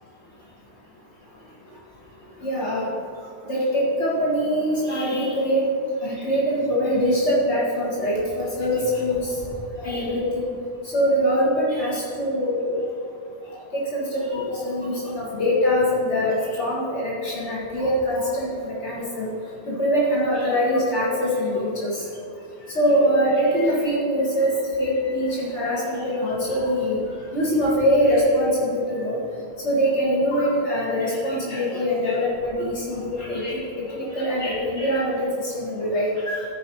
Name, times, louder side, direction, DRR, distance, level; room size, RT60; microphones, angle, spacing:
voice 1, 2.4-2.9 3.5-5.7 6.0-9.3 9.8-10.5 10.9-12.7 13.7-19.3 19.7-21.9 22.7-24.5 24.8-27.0 27.3-29.2 29.6-33.6 33.9-36.4, equal, 80° left, -6 dB, 2.0 m, -23 dB
14.0 x 5.0 x 4.5 m, 2.5 s
omnidirectional pair, 1.1 m